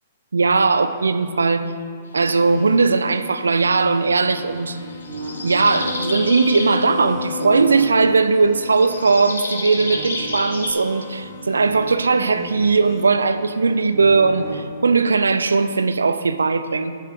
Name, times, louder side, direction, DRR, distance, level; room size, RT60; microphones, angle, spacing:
voice 1, 0.3-1.7 2.1-4.8 5.4-17.0, right 4 dB, 85° right, 0.5 m, -18 dB
sound 1, 2.2-13.1, left 7 dB, 55° left, 0.7 m, -36 dB
sound 2, 4.3-6.8 8.7-10.7, left 2 dB, 85° left, 1.8 m, -30 dB
sound 3, 4.3-9.1 9.8-14.7, right 3 dB, 55° right, 2.6 m, -35 dB
11.0 x 10.5 x 3.7 m
hypercardioid pair, 120°, 0 cm